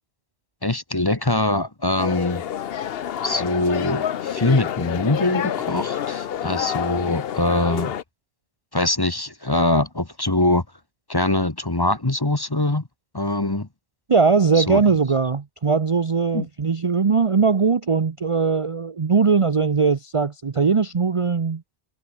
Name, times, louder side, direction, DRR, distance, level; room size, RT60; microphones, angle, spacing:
voice 1, 0.6-2.4 3.2-7.9 8.7-10.6 11.1-12.8 13.1-13.7 14.6-14.8 16.3-16.5, left 2 dB, 20° left, 1.3 m, -23 dB
sound 1, 2.0-8.0, left 9 dB, 65° left, 0.9 m, -28 dB
voice 2, 14.1-21.6, right 5 dB, 35° right, 0.7 m, -20 dB
omnidirectional pair, 1.1 m